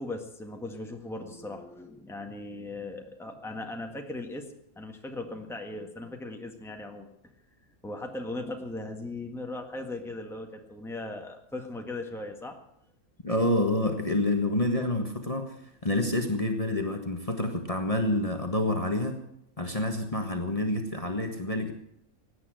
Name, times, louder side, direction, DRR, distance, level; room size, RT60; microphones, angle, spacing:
voice 1, 0.0-4.4 4.7-7.1 7.8-12.6, left 2 dB, ahead, 3 dB, 1.7 m, -38 dB
voice 2, 13.2-15.5 15.8-19.2 19.6-21.7, left 1 dB, 25° left, 4 dB, 1.6 m, -28 dB
17.0 x 9.9 x 7.7 m, 0.77 s
omnidirectional pair, 1.5 m